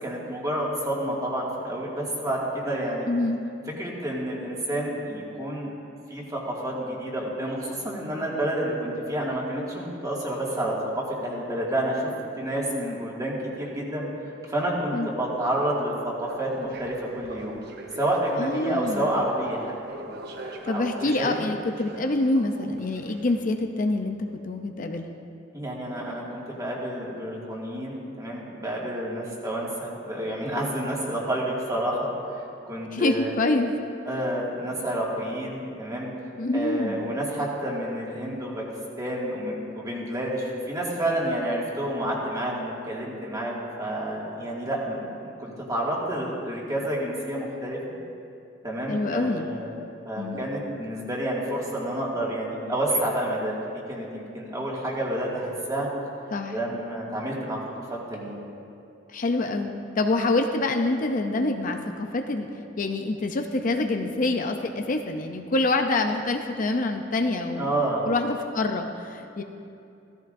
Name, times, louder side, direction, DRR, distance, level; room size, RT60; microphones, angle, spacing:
voice 1, 0.0-3.1 3.8-5.7 6.1-12.1 12.4-14.1 14.4-17.6 18.0-20.2 20.7-21.4 25.5-32.4 32.7-33.3 34.1-36.1 36.5-38.6 39.0-47.8 48.6-49.7 50.0-55.9 56.5-57.6 57.9-58.4 67.6-68.1, right 1 dB, 20° right, -4 dB, 2.1 m, -29 dB
voice 2, 3.1-3.4 14.9-15.1 18.4-19.1 20.6-24.2 24.4-25.1 32.9-33.7 36.4-37.1 48.9-49.5 50.1-50.5 56.3-56.6 59.1-62.5 62.8-67.7 68.1-69.4, left 2 dB, 45° left, 5 dB, 0.5 m, -26 dB
sound 1, 16.2-23.5, right 2 dB, 60° right, 0.9 m, -42 dB
15.0 x 14.0 x 2.6 m, 2.6 s
head